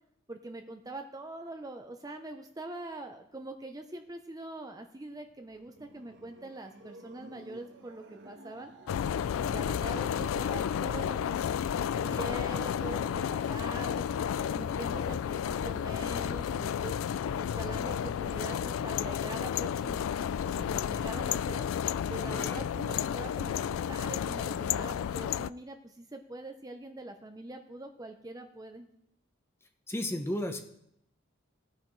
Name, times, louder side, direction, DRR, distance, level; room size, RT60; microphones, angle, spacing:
voice 1, 0.3-8.7 9.3-11.5 11.8-14.0 14.5-16.9 17.4-20.1 20.5-21.7 22.1-28.9, right 2 dB, 20° right, 5 dB, 0.7 m, -43 dB
sound 1, 5.1-10.5, right 2 dB, 60° right, 1.2 m, -54 dB
sound 2, 8.9-25.5, left 8 dB, 80° left, 0.3 m, -32 dB
voice 2, 22.3-22.6 22.9-23.0 29.9-30.6, left 1 dB, 10° left, 5 dB, 0.9 m, -34 dB
17.0 x 9.8 x 3.2 m, 0.77 s
head